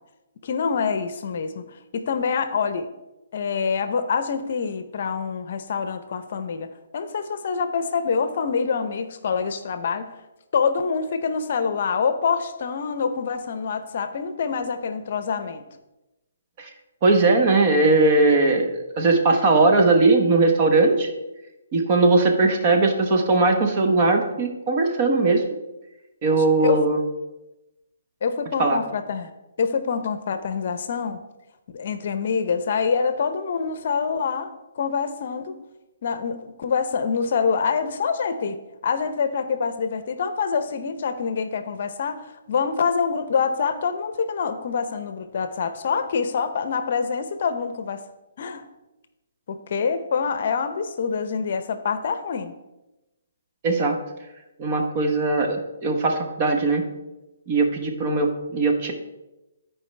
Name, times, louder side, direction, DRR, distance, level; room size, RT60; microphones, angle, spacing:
voice 1, 0.4-2.9 3.3-10.1 10.5-15.6 26.3-26.8 28.2-29.3 29.6-31.2 31.7-35.6 36.0-38.6 38.8-48.0 48.4-48.7 49.5-52.5, left 5 dB, 55° left, 10 dB, 0.7 m, -26 dB
voice 2, 17.0-21.1 21.7-25.4 26.2-27.0 28.6-28.8 53.6-54.0 54.6-56.8 57.5-58.9, right 3 dB, 35° right, 4 dB, 1.1 m, -19 dB
13.0 x 4.7 x 3.3 m, 1.0 s
hypercardioid pair, 155°, 0 cm